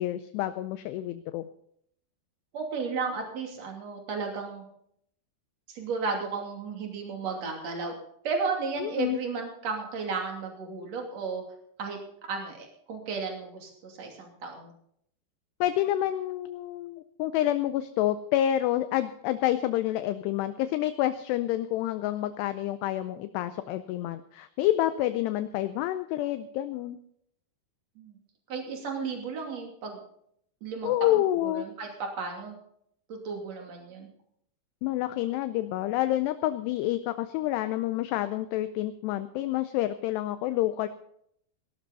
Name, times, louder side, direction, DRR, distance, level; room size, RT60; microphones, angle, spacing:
voice 1, 0.0-1.5 8.8-9.2 15.6-27.0 30.8-31.7 34.8-40.9, left 13 dB, 80° left, 11 dB, 2.5 m, -28 dB
voice 2, 2.5-4.6 5.7-8.0 8.2-11.4 11.8-14.7 28.0-28.2 28.5-30.0 30.6-31.9 32.2-32.6 33.1-34.1, right 4 dB, 40° right, 2 dB, 3.4 m, -34 dB
18.5 x 12.0 x 4.1 m, 0.69 s
omnidirectional pair, 5.4 m